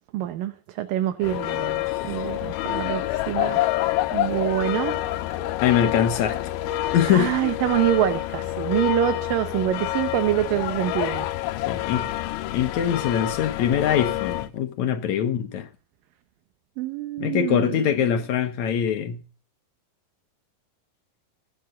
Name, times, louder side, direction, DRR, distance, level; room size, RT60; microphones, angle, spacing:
voice 1, 0.1-3.6 4.1-4.9 7.1-11.3 16.8-17.9, right 14 dB, 75° right, 2.5 m, -26 dB
sound 1, 1.2-14.5, left 14 dB, 85° left, 2.7 m, -27 dB
voice 2, 1.9-2.3 5.6-6.4 6.9-7.4 11.7-12.1 12.5-15.7 17.2-19.2, left 9 dB, 65° left, 1.9 m, -23 dB
22.5 x 7.8 x 3.9 m
omnidirectional pair, 4.2 m